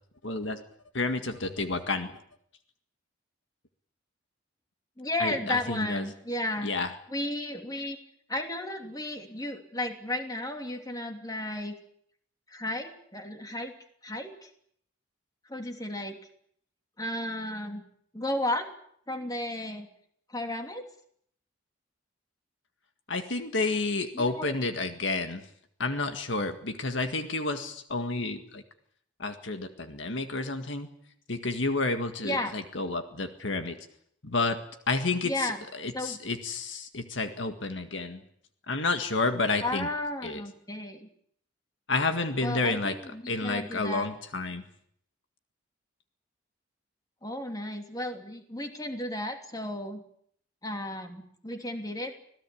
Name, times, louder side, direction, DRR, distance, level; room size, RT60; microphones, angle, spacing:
voice 1, 0.2-0.6 0.9-2.2 5.2-6.0 6.6-6.9 23.1-25.4 25.8-28.6 29.2-30.9 31.3-33.8 34.2-34.6 34.9-38.2 38.7-39.9 40.2-40.4 41.9-43.0 43.3-44.6, left 3 dB, 65° left, 7 dB, 1.9 m, -30 dB
voice 2, 5.0-6.7 7.1-8.0 8.3-11.8 12.5-13.7 14.0-14.5 15.5-16.2 17.0-17.8 18.1-18.7 19.1-19.9 20.3-20.9 24.1-24.7 32.2-32.5 35.2-35.6 35.9-36.2 39.6-41.1 42.4-44.1 47.2-50.0 50.6-52.2, left 1 dB, 20° left, 4 dB, 3.0 m, -33 dB
26.0 x 18.0 x 8.7 m, 0.67 s
head